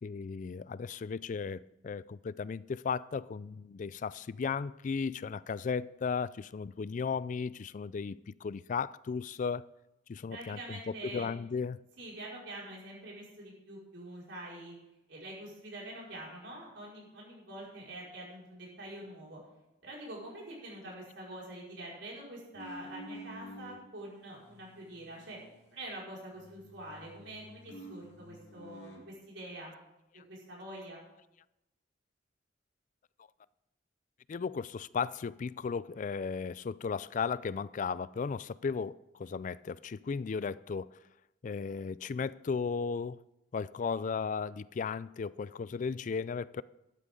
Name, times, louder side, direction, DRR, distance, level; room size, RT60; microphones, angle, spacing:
voice 1, 0.0-9.7 10.1-11.8 30.1-30.2 34.3-40.9 41.4-43.2 43.5-46.6, left 5 dB, 45° left, 0.3 m, -35 dB
voice 2, 10.3-11.3 12.0-14.8 15.1-19.4 19.8-25.4 25.7-29.7 30.3-31.0, right 1 dB, 80° right, 5.3 m, -45 dB
sound 1, 22.5-23.8 24.3-26.1 26.3-29.1, equal, 65° left, 2.6 m, -50 dB
13.5 x 12.0 x 3.8 m
head